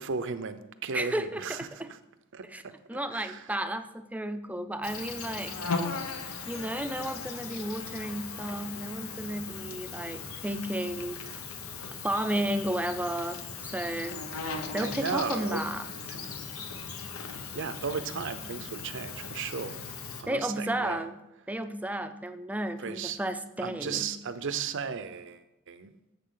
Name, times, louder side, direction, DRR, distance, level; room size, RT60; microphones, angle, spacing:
voice 1, 0.0-2.0 2.3-3.5 14.8-15.6 16.1-16.3 17.2-19.8 20.2-21.1 22.8-23.2 23.6-25.9, right 5 dB, 60° right, 11 dB, 0.7 m, -35 dB
voice 2, 0.9-1.9 2.5-2.6 2.9-5.6 6.5-11.2 12.0-14.2 14.7-15.9 20.3-21.1 21.5-24.1, right 1 dB, 5° right, 9 dB, 0.5 m, -33 dB
Insect, 4.8-20.2, left 4 dB, 85° left, 1.0 m, -38 dB
11.0 x 7.5 x 3.9 m, 0.92 s
head